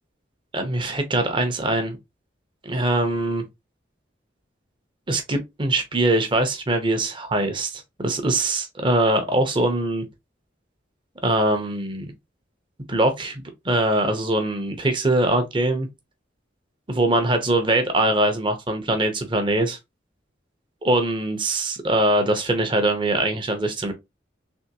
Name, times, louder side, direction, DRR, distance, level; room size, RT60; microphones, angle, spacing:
voice 1, 0.5-2.0 2.6-3.4 5.1-10.0 11.2-12.1 12.9-15.9 16.9-19.8 20.8-23.9, right 1 dB, 25° right, 0.7 m, -22 dB
3.5 x 3.0 x 2.8 m
head